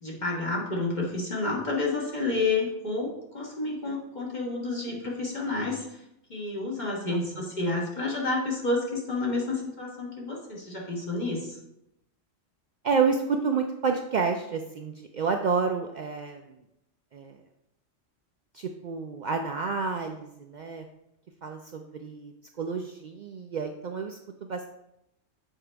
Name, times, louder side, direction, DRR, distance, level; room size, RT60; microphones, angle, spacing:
voice 1, 0.0-6.0 6.3-11.6, left 3 dB, 35° left, -2 dB, 1.4 m, -30 dB
voice 2, 7.1-7.4 12.8-16.6 17.1-17.4 18.5-20.9 21.4-24.7, right 5 dB, 85° right, 4 dB, 0.4 m, -30 dB
7.2 x 4.9 x 3.4 m, 0.83 s
omnidirectional pair, 1.3 m